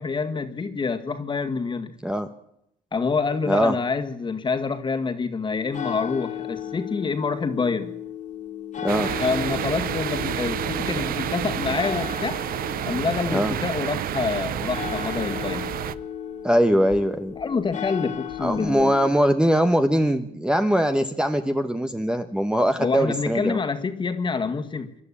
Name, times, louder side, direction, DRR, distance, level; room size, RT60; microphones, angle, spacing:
voice 1, 0.0-1.9 2.9-7.9 9.2-12.4 12.9-15.7 17.4-18.9 22.8-25.0, left 4 dB, 30° left, 7 dB, 2.0 m, -27 dB
sound 1, 5.5-19.1, left 9 dB, 45° left, 2.4 m, -35 dB
sound 2, 8.9-16.0, right 11 dB, 60° right, 0.8 m, -29 dB
voice 2, 16.4-17.3 18.4-23.6, equal, 5° right, 7 dB, 1.1 m, -21 dB
26.5 x 11.5 x 8.6 m, 0.77 s
cardioid pair, 110°, 17 cm